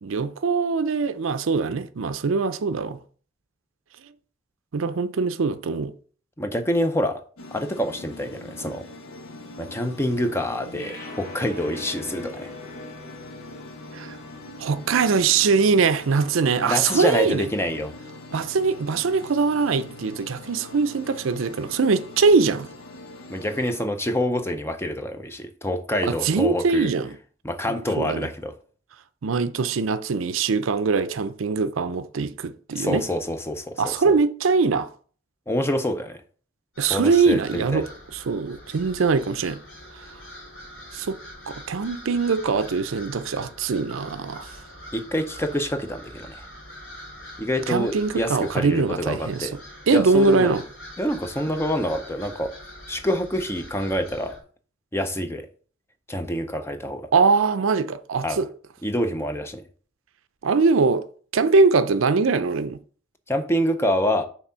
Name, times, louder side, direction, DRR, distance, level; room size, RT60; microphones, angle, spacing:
voice 1, 0.0-3.0 4.7-5.9 13.9-14.2 14.6-17.5 18.3-22.7 26.0-27.1 28.0-28.3 29.2-33.0 33.8-34.9 36.8-37.9 38.3-39.6 40.9-41.2 41.5-44.5 47.7-49.5 49.9-50.6 57.1-58.5 60.4-61.0 61.3-62.8, right 4 dB, 75° right, 0.5 m, -22 dB
voice 2, 6.4-7.2 7.5-8.8 9.6-12.5 16.6-17.9 23.3-26.9 27.4-28.6 32.7-34.2 35.5-36.2 36.9-37.9 44.9-46.4 47.4-49.5 49.9-50.6 51.0-52.5 52.9-54.4 54.9-55.5 56.1-57.1 58.2-58.4 58.8-59.6 63.3-64.2, equal, 10° left, 0.5 m, -26 dB
sound 1, 7.4-23.8, left 2 dB, 85° left, 0.9 m, -42 dB
sound 2, 10.7-17.0, left 2 dB, 40° left, 1.2 m, -44 dB
sound 3, 36.7-54.4, equal, 70° left, 2.3 m, -44 dB
6.0 x 3.6 x 5.5 m
head